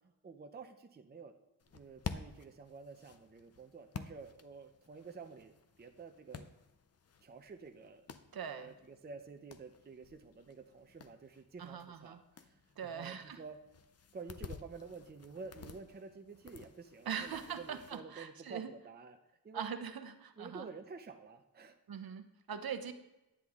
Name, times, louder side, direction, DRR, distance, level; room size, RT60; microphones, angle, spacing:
voice 1, 0.2-1.3 1.7-6.5 7.2-8.1 8.5-13.6 14.1-19.2 19.4-19.7 20.4-21.8, right 4 dB, 25° right, 6 dB, 0.5 m, -50 dB
sound 1, 1.6-18.0, left 6 dB, 40° left, 0.5 m, -51 dB
voice 2, 8.3-8.7 11.6-12.2 12.8-13.4 17.1-18.7 19.5-20.7 21.9-22.9, right 7 dB, 70° right, 8 dB, 0.8 m, -42 dB
10.0 x 9.7 x 3.6 m, 0.97 s
wide cardioid pair, 170°, 38 cm